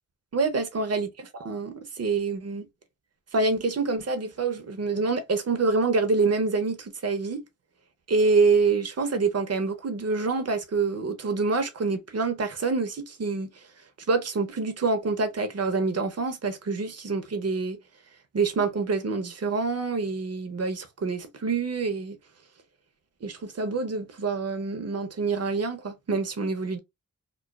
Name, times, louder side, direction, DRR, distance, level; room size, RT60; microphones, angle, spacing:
voice 1, 0.3-1.1 1.3-2.7 3.3-7.4 8.1-13.5 14.1-17.8 18.3-22.2 23.2-26.8, right 4 dB, 45° right, 0.8 m, -26 dB
3.0 x 2.1 x 2.3 m
cardioid pair, 65°, 34 cm